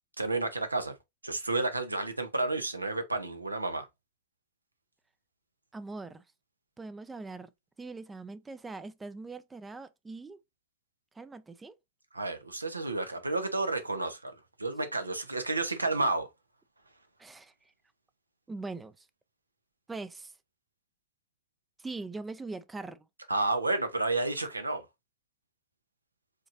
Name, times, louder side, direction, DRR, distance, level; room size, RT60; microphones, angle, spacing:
voice 1, 0.2-1.0 1.2-3.9 12.1-14.3 14.6-16.3 23.3-24.9, right 2 dB, 80° right, 0.8 m, -31 dB
voice 2, 5.7-6.2 6.8-7.5 7.8-10.4 11.1-11.7 17.2-17.5 18.5-19.1 19.9-20.3 21.8-23.1, right 3 dB, 10° right, 0.4 m, -41 dB
5.1 x 4.0 x 2.6 m
figure-of-eight pair, 90°, 0 cm